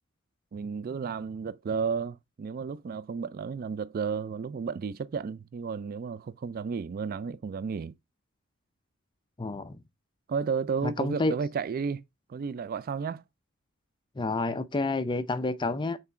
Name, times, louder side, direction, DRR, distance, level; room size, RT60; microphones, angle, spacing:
voice 1, 0.5-7.9 10.3-12.0 12.3-13.2, right 5 dB, 45° right, 0.3 m, -32 dB
voice 2, 9.4-9.8 10.8-11.4 14.2-16.0, left 2 dB, 20° left, 0.5 m, -29 dB
5.9 x 4.0 x 4.3 m
head